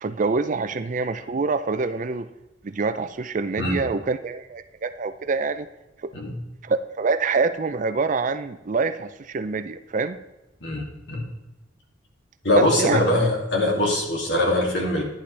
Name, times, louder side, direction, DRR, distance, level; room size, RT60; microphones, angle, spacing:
voice 1, 0.0-2.3 2.6-5.7 6.0-6.1 6.6-10.2 12.5-13.0, right 4 dB, 40° right, 11 dB, 0.5 m, -25 dB
voice 2, 10.6-11.3 12.4-15.0, left 1 dB, 65° left, -1 dB, 2.7 m, -22 dB
11.5 x 10.0 x 3.4 m, 0.98 s
head